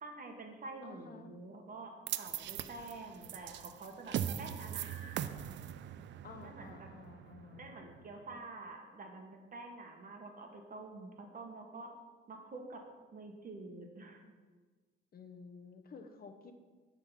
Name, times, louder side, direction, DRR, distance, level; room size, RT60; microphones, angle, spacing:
voice 1, 0.0-5.3 6.4-6.9 7.5-11.9 12.3-12.8 13.1-14.3, right 3 dB, 45° right, 3 dB, 1.4 m, -48 dB
voice 2, 0.8-1.3 6.2-7.7 15.1-16.5, left 5 dB, 50° left, 6 dB, 0.8 m, -52 dB
sound 1, 2.1-8.3, right 10 dB, 65° right, 0.4 m, -41 dB
10.5 x 3.8 x 5.7 m, 1.4 s
cardioid pair, 90°, 20 cm